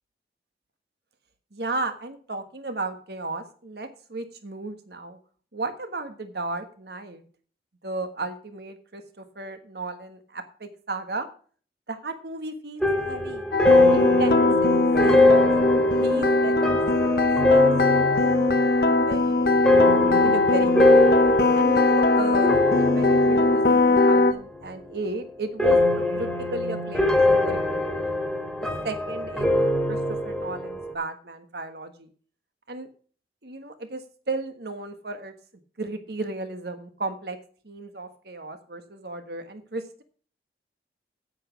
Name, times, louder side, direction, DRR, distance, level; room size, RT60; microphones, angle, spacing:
voice 1, 1.5-5.2 5.5-7.2 7.8-11.3 11.9-13.4 13.9-15.5 16.0-17.2 17.5-21.1 21.5-28.1 28.8-32.1 32.7-32.9 33.4-35.3 35.8-37.4 37.6-40.0, right 2 dB, 60° right, 8 dB, 1.4 m, -35 dB
sound 1, 12.8-24.3 24.6-25.1 25.6-30.9, left 2 dB, ahead, 2.0 m, -23 dB
sound 2, 13.5-24.3, left 2 dB, 55° left, 0.9 m, -20 dB
9.0 x 8.3 x 5.9 m, 0.44 s
head